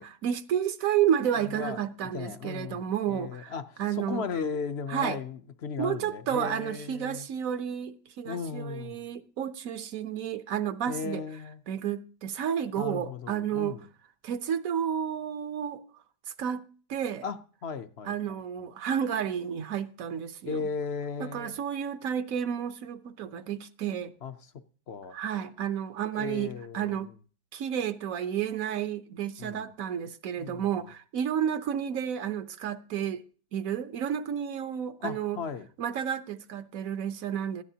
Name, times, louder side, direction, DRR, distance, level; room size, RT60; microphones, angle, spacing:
voice 1, 0.0-3.5 3.8-4.3 4.9-5.2 5.8-11.2 11.7-13.8 14.2-15.8 16.4-16.6 16.9-17.3 18.0-20.6 21.2-24.1 25.1-27.1 27.5-33.2 33.5-35.4 35.8-37.6, right 9 dB, 65° right, 1.2 m, -31 dB
voice 2, 1.3-7.3 8.2-9.0 10.9-11.6 12.8-13.8 17.2-18.4 20.5-21.6 24.2-24.3 24.9-25.2 26.2-26.9 29.4-29.7 30.4-30.7 35.0-35.7, left 5 dB, 55° left, 0.8 m, -36 dB
19.0 x 13.0 x 2.8 m
omnidirectional pair, 1.6 m